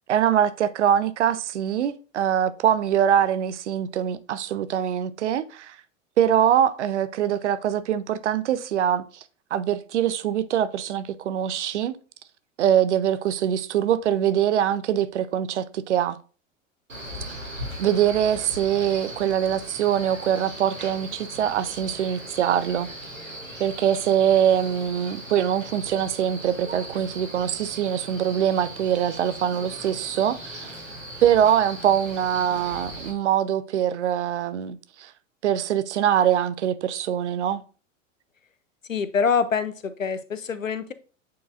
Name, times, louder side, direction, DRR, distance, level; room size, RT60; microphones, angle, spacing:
voice 1, 0.1-5.8 6.2-9.0 9.5-11.9 12.6-16.2 17.8-22.9 23.6-30.7 31.2-35.1 35.4-37.6, right 10 dB, 60° right, 0.7 m, -23 dB
Male speech man speaking, 16.9-33.1, right 1 dB, 85° right, 3.0 m, -39 dB
voice 2, 38.9-40.9, left 6 dB, 85° left, 0.7 m, -25 dB
8.2 x 4.7 x 2.5 m
figure-of-eight pair, 90°, 39 cm